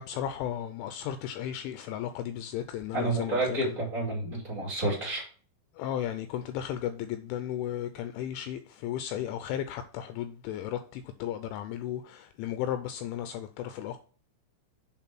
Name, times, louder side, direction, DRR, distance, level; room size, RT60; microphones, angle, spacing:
voice 1, 0.0-3.7 5.8-14.0, left 11 dB, 85° left, 2.7 m, -35 dB
voice 2, 2.9-5.3, right 2 dB, 35° right, 1.3 m, -30 dB
7.9 x 3.6 x 5.9 m
omnidirectional pair, 5.7 m